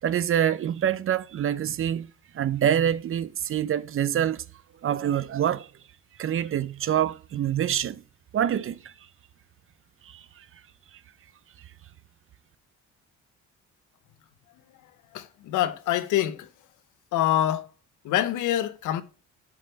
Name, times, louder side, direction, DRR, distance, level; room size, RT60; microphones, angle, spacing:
voice 1, 0.0-4.4 4.8-5.7 6.2-8.0 8.3-8.9 10.1-10.2, right 10 dB, 45° right, 0.5 m, -26 dB
voice 2, 15.1-16.5 17.1-17.7 18.0-19.0, left 12 dB, 85° left, 0.8 m, -25 dB
7.2 x 3.4 x 5.0 m
cardioid pair, 90°, 30 cm